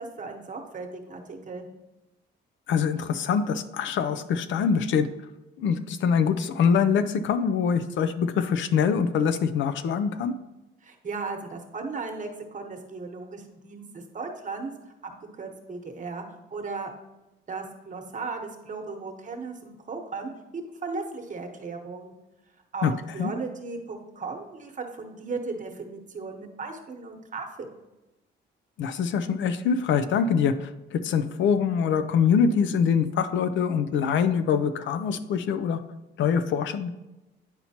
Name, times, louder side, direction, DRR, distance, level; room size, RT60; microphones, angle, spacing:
voice 1, 0.0-1.7 10.8-14.7 15.4-16.9 17.5-22.1 22.7-27.8, right 4 dB, 40° right, 4 dB, 1.1 m, -36 dB
voice 2, 2.7-5.1 5.6-10.3 22.8-22.9 23.2-23.3 28.8-35.8 36.2-36.9, left 6 dB, 75° left, 11 dB, 0.5 m, -24 dB
9.6 x 4.3 x 2.8 m, 1.0 s
cardioid pair, 90°, 20 cm